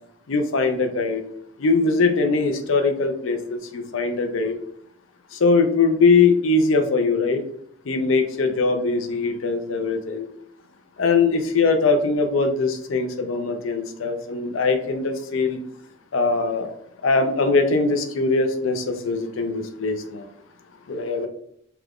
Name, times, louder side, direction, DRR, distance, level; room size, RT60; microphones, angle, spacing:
voice 1, 0.3-1.2 1.6-4.6 5.3-7.4 7.9-10.3 11.0-15.6 16.1-16.7 17.0-20.3 20.9-21.3, left 4 dB, 75° left, 6 dB, 0.5 m, -21 dB
3.4 x 2.4 x 3.4 m, 0.69 s
head